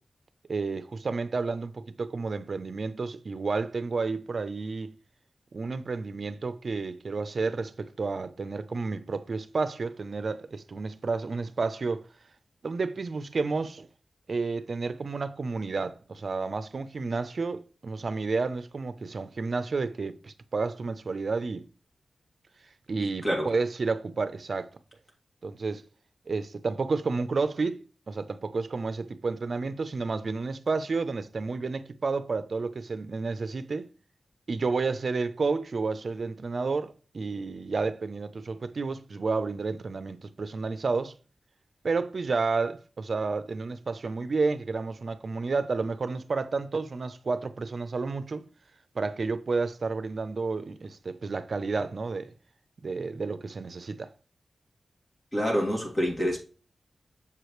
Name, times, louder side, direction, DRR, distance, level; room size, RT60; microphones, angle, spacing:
voice 1, 0.5-4.9 5.5-12.1 12.6-13.9 14.3-21.6 22.9-24.7 25.4-25.8 26.3-33.9 34.5-41.1 41.8-48.5 48.9-52.3 52.8-54.1, right 4 dB, 55° right, 0.6 m, -31 dB
voice 2, 23.0-23.5 55.3-56.4, equal, 25° left, 2.3 m, -27 dB
7.2 x 4.8 x 3.2 m
wide cardioid pair, 120°, 0 cm